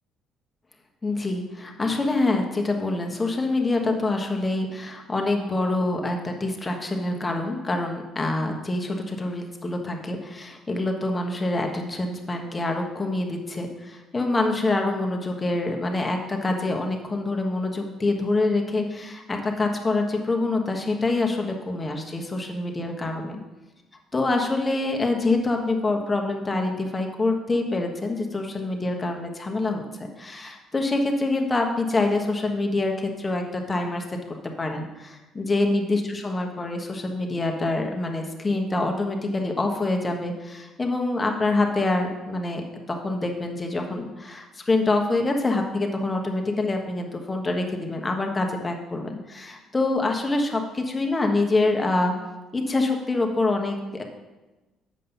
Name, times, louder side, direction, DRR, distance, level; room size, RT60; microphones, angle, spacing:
voice 1, 1.0-23.4 24.1-52.1 52.5-54.0, left 2 dB, 25° left, 2 dB, 1.4 m, -26 dB
7.5 x 5.4 x 5.5 m, 1.1 s
supercardioid pair, 70°, 0 cm